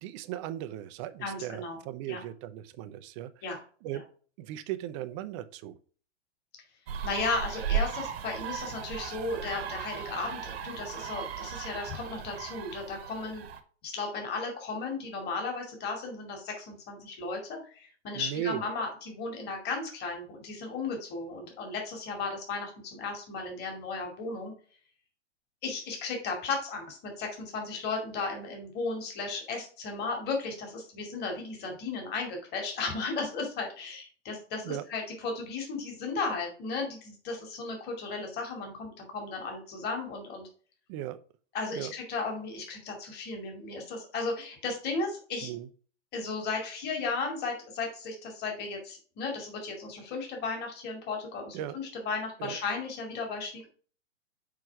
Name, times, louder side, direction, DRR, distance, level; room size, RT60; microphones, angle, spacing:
voice 1, 0.0-3.3 3.8-4.0 4.4-5.8 18.1-18.6 34.6-34.8 40.9-41.2 41.7-41.9 45.4-45.7 51.5-51.8 52.4-52.6, right 12 dB, 25° right, 12 dB, 0.4 m, -37 dB
voice 2, 1.2-1.8 2.1-2.2 3.4-3.6 3.9-4.0 7.0-13.4 13.8-24.5 25.6-40.5 41.5-45.5 46.1-53.7, left 4 dB, 30° left, 2 dB, 2.4 m, -35 dB
sound 1, 6.9-13.6, right 7 dB, 60° right, 1.1 m, -36 dB
6.3 x 4.7 x 4.6 m, 0.42 s
hypercardioid pair, 120°, 36 cm